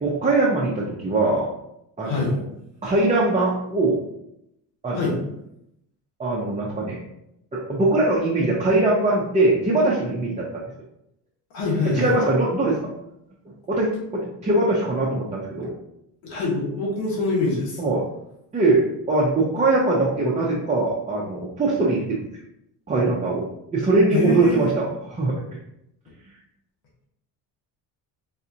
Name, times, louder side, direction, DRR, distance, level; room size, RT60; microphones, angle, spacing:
voice 1, 0.0-1.5 2.0-2.3 2.8-4.0 4.8-5.1 6.2-7.0 7.5-10.6 11.9-12.9 13.7-15.7 17.8-18.0 18.5-18.8 19.1-22.2 22.9-23.4 23.7-25.4, right 2 dB, 20° right, -4 dB, 0.6 m, -21 dB
voice 2, 2.0-2.4 4.9-5.2 11.5-12.2 16.2-17.8 24.1-24.7, left 3 dB, 85° left, -4 dB, 1.3 m, -24 dB
4.2 x 2.4 x 2.8 m, 0.81 s
cardioid pair, 105°, 40 cm